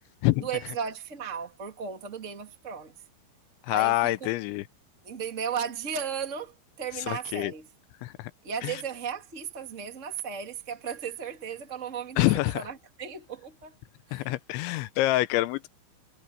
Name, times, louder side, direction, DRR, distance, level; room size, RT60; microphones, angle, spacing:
voice 1, 0.4-2.9 3.7-4.1 5.0-7.6 8.4-12.3 12.5-13.7 14.1-14.3, right 7 dB, 55° right, 0.8 m, -35 dB
voice 2, 3.7-4.7 7.1-7.5 8.0-8.3 8.6-8.8 12.2-12.6 14.1-15.7, left 18 dB, 80° left, 2.9 m, -26 dB
omnidirectional pair, 5.6 m